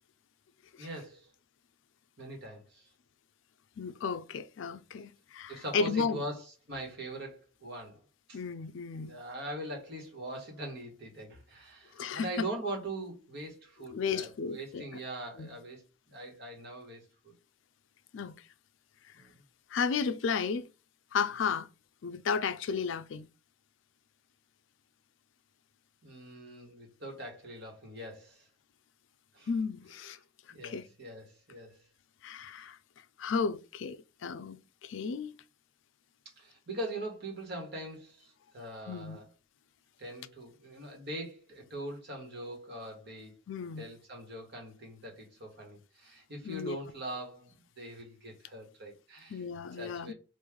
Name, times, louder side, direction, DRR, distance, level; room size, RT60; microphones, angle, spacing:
voice 1, 0.8-1.3 2.2-2.9 5.5-8.0 8.3-8.4 9.0-17.3 19.1-19.4 26.0-28.5 29.3-29.5 30.5-31.8 36.4-39.2 40.0-43.4 43.8-49.4 49.8-50.1, right 1 dB, 50° right, 1.5 m, -42 dB
voice 2, 3.8-6.2 8.3-9.1 11.9-12.3 13.9-14.8 15.4-15.5 18.1-18.3 19.7-20.7 21.1-21.7 22.0-23.3 29.5-30.2 30.6-30.8 32.2-32.8 33.2-35.3 38.9-39.2 43.5-43.9 46.4-46.8 49.3-50.1, left 5 dB, 60° left, 0.4 m, -33 dB
3.1 x 2.5 x 3.6 m
head